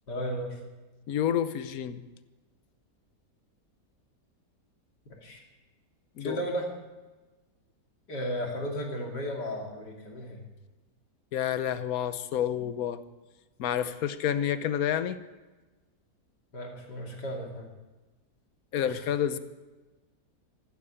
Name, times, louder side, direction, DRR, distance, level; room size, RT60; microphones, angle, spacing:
voice 1, 0.1-0.6 5.2-5.4 6.2-6.7 8.1-10.4 16.5-17.7 18.8-19.0, equal, 80° left, 1 dB, 3.4 m, -34 dB
voice 2, 1.1-2.0 6.2-6.4 11.3-13.0 13.6-15.2 18.7-19.4, left 9 dB, 60° left, 13 dB, 1.3 m, -29 dB
15.0 x 12.5 x 7.1 m, 1.2 s
omnidirectional pair, 1.8 m